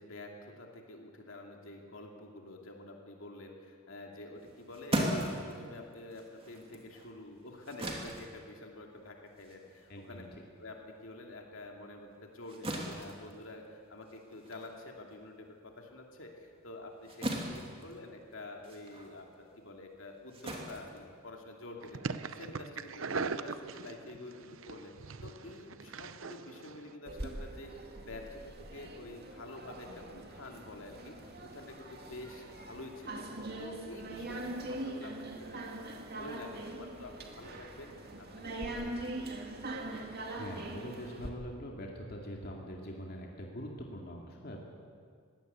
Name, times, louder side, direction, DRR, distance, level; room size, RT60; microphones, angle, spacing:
voice 1, 0.0-10.2 10.6-22.0 22.3-24.9 25.2-31.1 31.4-35.7 36.1-39.4, left 2 dB, 70° left, 1 dB, 2.7 m, -48 dB
sound 1, 4.4-11.2 11.5-21.7, right 1 dB, 30° right, 2.9 m, -40 dB
voice 2, 9.9-10.3 40.3-44.6, equal, 50° left, 0 dB, 2.4 m, -43 dB
sound 2, 21.8-27.0, right 4 dB, 75° right, 0.8 m, -40 dB
sound 3, 27.1-41.3, right 1 dB, 50° right, 2.2 m, -42 dB
21.5 x 16.5 x 8.2 m, 2.1 s
head